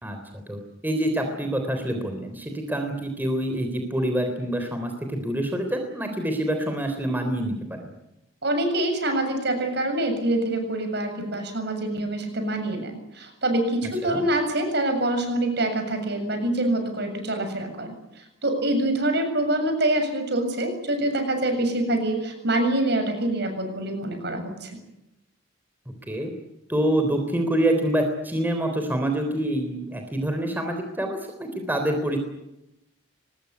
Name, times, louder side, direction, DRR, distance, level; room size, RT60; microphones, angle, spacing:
voice 1, 0.0-7.9 14.0-14.2 26.1-26.3 26.7-32.2, right 1 dB, 10° right, 5 dB, 3.6 m, -26 dB
voice 2, 8.4-24.7, right 1 dB, 55° right, 6 dB, 7.4 m, -25 dB
24.0 x 20.5 x 9.6 m, 0.87 s
head